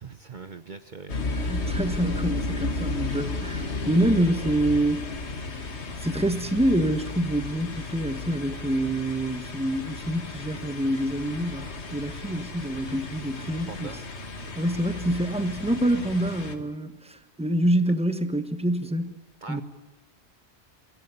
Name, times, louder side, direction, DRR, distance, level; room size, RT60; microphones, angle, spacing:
voice 1, 0.0-1.8 13.7-14.2 19.4-19.6, right 4 dB, 50° right, 1.0 m, -42 dB
sound 1, 1.1-16.5, left 3 dB, 80° left, 1.9 m, -34 dB
voice 2, 1.5-5.0 6.0-13.9 14.5-19.2 19.5-19.6, right 1 dB, 5° right, 1.3 m, -26 dB
24.5 x 15.0 x 9.7 m
omnidirectional pair, 1.1 m